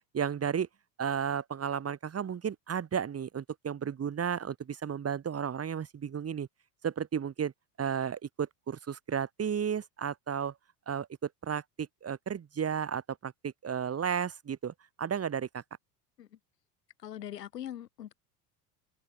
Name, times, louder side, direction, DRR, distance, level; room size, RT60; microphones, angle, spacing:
voice 1, 0.1-0.7 1.0-6.5 6.8-7.5 7.8-10.6 10.9-15.6, right 7 dB, 30° right, 3.1 m, -33 dB
voice 2, 17.0-18.1, left 11 dB, 90° left, 2.4 m, -42 dB
open air
hypercardioid pair, 85°, 48 cm